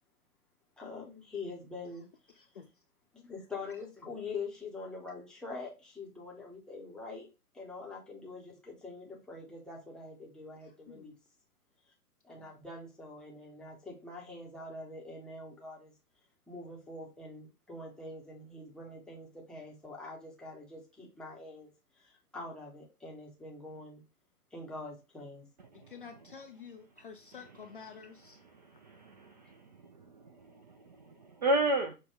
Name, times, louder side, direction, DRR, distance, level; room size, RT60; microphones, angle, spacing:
voice 1, 0.8-2.1 3.1-7.3 7.5-11.1 12.2-15.9 16.5-21.7 22.0-24.0 24.5-25.5, left 3 dB, ahead, 0.7 m, -44 dB
voice 2, 2.4-2.7 10.9-11.2 25.7-28.4, left 6 dB, 40° left, 0.4 m, -49 dB
voice 3, 25.7-26.1 28.3-31.9, right 1 dB, 30° right, 0.4 m, -34 dB
6.2 x 2.2 x 3.6 m
figure-of-eight pair, 115°, 46 cm